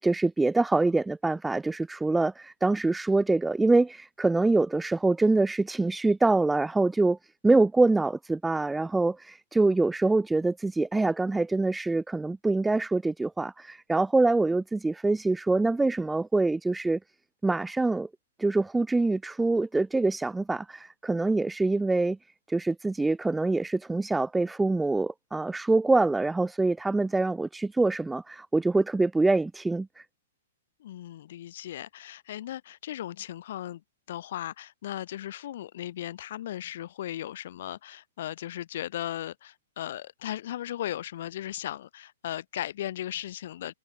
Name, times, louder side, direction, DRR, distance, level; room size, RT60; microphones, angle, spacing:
voice 1, 0.0-7.2 7.4-17.0 17.4-18.1 18.4-22.2 22.5-29.9, right 3 dB, 5° right, 0.5 m, -25 dB
voice 2, 30.8-33.8 34.1-43.7, left 12 dB, 50° left, 2.4 m, -37 dB
figure-of-eight pair, 110°, 0 cm